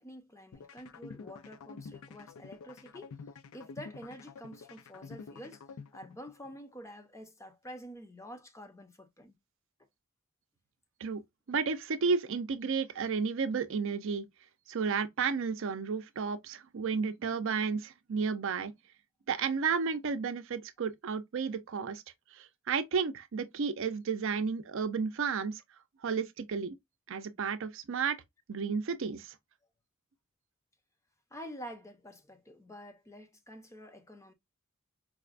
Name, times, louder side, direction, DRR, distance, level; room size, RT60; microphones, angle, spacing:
voice 1, 0.0-3.2 3.5-5.6 5.9-9.3 31.3-34.3, equal, 15° left, 0.6 m, -48 dB
sound 1, 0.5-6.5, left 5 dB, 80° left, 0.4 m, -48 dB
voice 2, 11.5-14.3 14.7-18.7 19.3-22.0 22.3-25.6 26.0-26.8 27.1-28.2 28.5-29.3, right 5 dB, 65° right, 0.5 m, -32 dB
4.7 x 2.1 x 2.4 m
head